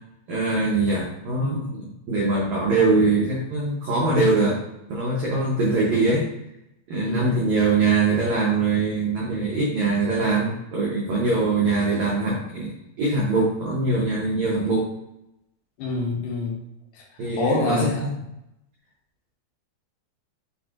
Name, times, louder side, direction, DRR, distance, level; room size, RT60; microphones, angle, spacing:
voice 1, 0.3-4.6 4.9-6.3 6.9-14.9 17.2-18.1, right 3 dB, 85° right, -4 dB, 1.6 m, -22 dB
voice 2, 7.1-7.4 11.3-11.7 15.8-16.6 16.9-18.1, left 3 dB, 85° left, -1 dB, 2.8 m, -27 dB
7.9 x 2.6 x 2.4 m, 0.87 s
omnidirectional pair, 4.5 m